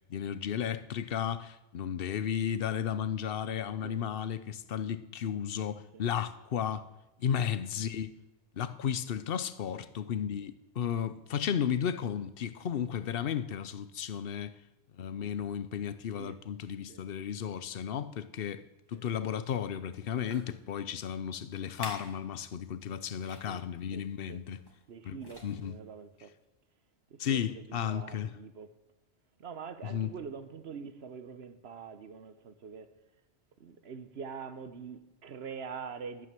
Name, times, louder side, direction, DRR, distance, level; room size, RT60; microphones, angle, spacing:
voice 1, 0.1-6.9 7.2-8.1 8.6-14.5 15.0-18.6 18.9-24.6 25.0-25.8 27.2-28.3 29.8-30.1, left 8 dB, 60° left, 0.9 m, -34 dB
sound 1, 19.5-19.6 20.1-20.6 21.2-21.3 21.7-22.2 22.5-22.7 23.2-23.6 24.6-24.9 25.2-25.8 26.4-26.5, left 1 dB, 20° left, 2.3 m, -48 dB
voice 2, 23.9-24.4 24.9-26.3 27.1-28.8 29.4-32.9 33.6-36.3, right 6 dB, 65° right, 1.1 m, -44 dB
12.0 x 9.6 x 7.6 m
omnidirectional pair, 1.2 m